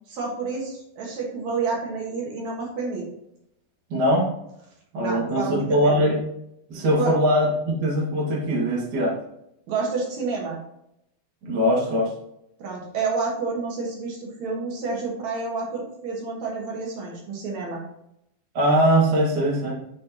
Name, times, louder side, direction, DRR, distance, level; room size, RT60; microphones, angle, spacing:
voice 1, 0.1-3.0 5.0-6.0 6.9-7.1 9.7-10.6 12.6-17.8, right 4 dB, 60° right, -2 dB, 2.1 m, -29 dB
voice 2, 3.9-4.3 4.9-6.2 6.7-9.1 11.4-12.1 18.5-19.7, equal, 90° right, -3 dB, 0.9 m, -21 dB
9.5 x 4.4 x 2.8 m, 0.79 s
omnidirectional pair, 4.7 m